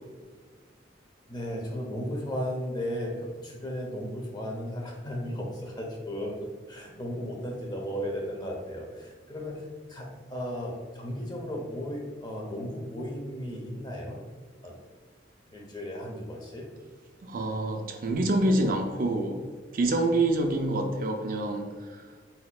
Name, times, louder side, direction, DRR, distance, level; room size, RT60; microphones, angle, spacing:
voice 1, 1.3-6.4 6.7-14.2 14.6-14.8 15.5-16.7, equal, 25° left, 0 dB, 0.8 m, -35 dB
voice 2, 17.2-19.4 19.7-22.0, right 2 dB, 50° right, 4 dB, 0.4 m, -26 dB
4.3 x 4.3 x 2.3 m, 1.5 s
head